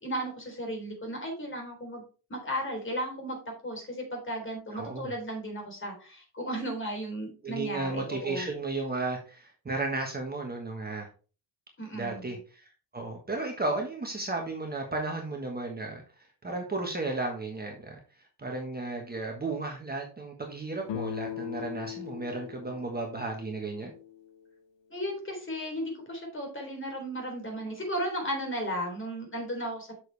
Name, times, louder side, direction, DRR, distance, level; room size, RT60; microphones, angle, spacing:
voice 1, 0.0-2.0 2.3-8.5 11.8-12.4 24.9-30.0, equal, 30° left, 1 dB, 3.7 m, -35 dB
voice 2, 4.7-5.1 7.4-11.1 11.9-23.9, right 3 dB, 20° right, 1 dB, 1.5 m, -34 dB
sound 1, 20.8-24.5, left 11 dB, 80° left, 0.9 m, -40 dB
7.9 x 6.5 x 3.4 m, 0.36 s
cardioid pair, 125°, 43 cm